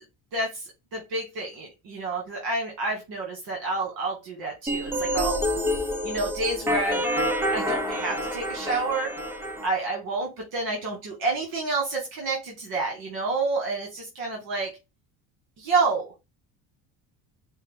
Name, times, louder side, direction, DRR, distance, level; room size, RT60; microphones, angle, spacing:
voice 1, 0.3-0.6 0.9-5.4 6.0-7.1 7.5-9.1 9.6-14.7 15.6-16.1, right 3 dB, 75° right, 0 dB, 1.6 m, -29 dB
sound 1, 4.7-9.7, equal, 5° right, 0.5 m, -27 dB
5.3 x 2.0 x 3.6 m, 0.24 s
cardioid pair, 155°, 37 cm